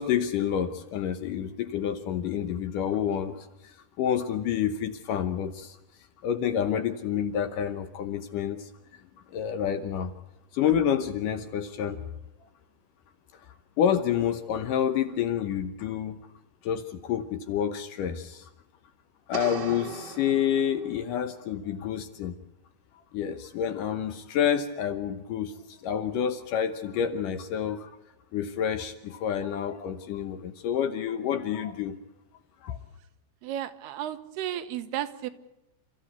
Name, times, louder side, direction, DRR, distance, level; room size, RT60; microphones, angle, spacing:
voice 1, 0.0-5.8 6.2-8.7 9.3-10.1 10.5-12.0 13.8-16.2 16.6-18.5 19.3-22.3 23.1-27.9 28.3-32.0 32.6-32.8, left 9 dB, 70° left, 9 dB, 2.2 m, -28 dB
sound 1, 19.3-21.2, right 5 dB, 35° right, 1.8 m, -39 dB
voice 2, 33.4-35.3, right 11 dB, 85° right, 10 dB, 3.0 m, -33 dB
29.0 x 14.0 x 8.1 m, 0.88 s
omnidirectional pair, 4.6 m